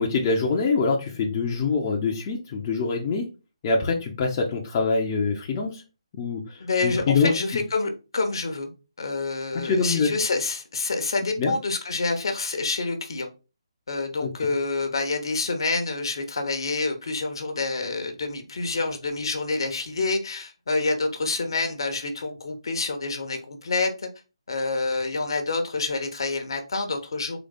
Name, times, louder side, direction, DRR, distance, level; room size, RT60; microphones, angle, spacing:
voice 1, 0.0-3.3 3.6-5.8 6.2-7.6 9.5-10.1 11.4-11.5 14.2-14.5, left 4 dB, 30° left, 0 dB, 0.7 m, -25 dB
voice 2, 6.6-8.7 9.0-13.3 13.9-24.1 24.5-27.4, left 3 dB, 55° left, 6 dB, 1.0 m, -27 dB
4.0 x 3.3 x 3.6 m, 0.31 s
figure-of-eight pair, 140°, 3 cm